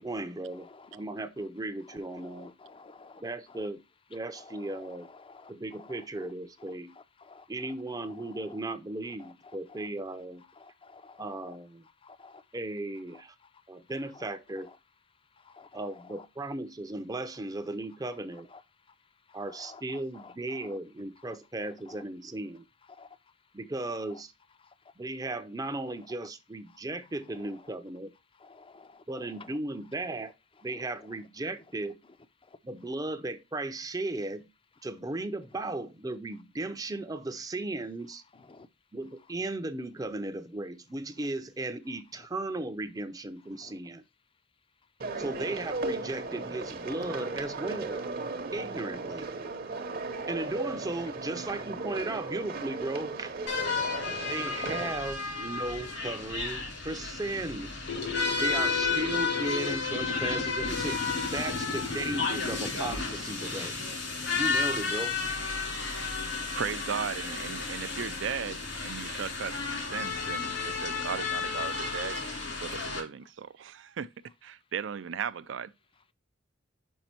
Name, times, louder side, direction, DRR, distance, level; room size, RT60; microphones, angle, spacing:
voice 1, 0.0-2.5 3.2-3.8 4.1-5.1 5.5-6.9 7.5-10.4 11.2-11.8 12.5-13.3 13.7-14.7 15.7-18.5 19.3-22.6 23.5-24.3 25.0-28.1 29.1-30.3 30.6-32.0 32.6-34.5 34.8-38.2 38.9-44.0 45.2-48.0 48.5-49.3 50.3-53.3 54.3-57.8 58.4-63.8 64.3-65.2, right 2 dB, 20° right, 0.5 m, -36 dB
voice 2, 2.1-3.7 4.3-5.5 5.8-6.0 7.2-7.7 8.0-8.6 9.2-9.3 9.7-9.9 10.6-11.6 12.0-12.4 14.1-14.3 15.4-16.3 18.5-18.6 19.3-19.8 20.1-20.8 21.2-21.4 21.9-22.0 23.0-23.1 24.1-24.2 27.4-27.5 28.4-29.5 30.7-30.8 38.5-38.7 43.6-43.7 49.4-49.5 53.8-54.1, left 4 dB, 30° left, 0.5 m, -52 dB
sound 1, 45.0-54.9, right 3 dB, 50° right, 0.8 m, -36 dB
sound 2, 53.5-73.0, left 4 dB, 75° left, 2.9 m, -32 dB
sound 3, 57.9-63.1, left 4 dB, 60° left, 1.0 m, -36 dB
voice 3, 66.5-72.2 72.6-74.1 74.4-75.7, right 7 dB, 70° right, 0.4 m, -36 dB
5.5 x 5.0 x 4.4 m
head